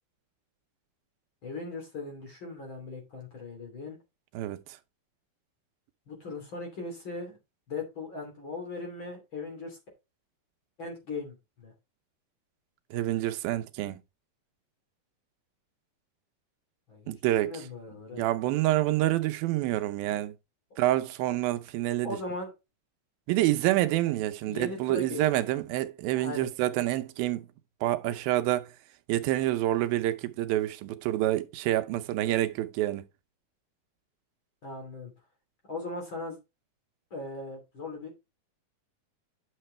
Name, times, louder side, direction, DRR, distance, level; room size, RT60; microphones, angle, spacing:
voice 1, 1.4-4.0 6.1-7.3 7.7-9.8 10.8-11.7 16.9-17.1 17.4-18.2 22.0-22.5 24.5-25.2 26.1-26.5 34.6-35.1 35.6-36.4 37.1-38.2, left 3 dB, 35° left, 3.2 m, -38 dB
voice 2, 12.9-14.0 17.1-17.6 18.1-20.3 20.8-22.2 23.3-27.5 27.8-28.7 29.1-33.1, right 15 dB, 85° right, 2.6 m, -27 dB
9.7 x 6.7 x 3.1 m
omnidirectional pair, 4.1 m